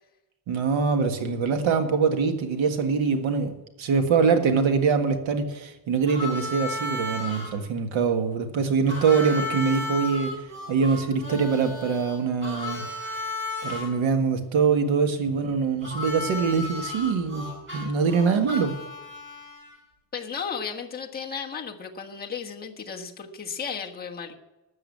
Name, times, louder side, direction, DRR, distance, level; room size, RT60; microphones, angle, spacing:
voice 1, 0.5-10.4 10.7-12.9 13.6-17.5 17.7-18.8, right 5 dB, 85° right, 1.8 m, -24 dB
Harmonica, 6.1-7.5 8.9-13.9 15.8-19.8, left 2 dB, 25° right, 4.9 m, -34 dB
voice 2, 20.1-24.3, left 6 dB, 20° left, 1.3 m, -34 dB
13.0 x 7.5 x 8.6 m
cardioid pair, 170°, 46 cm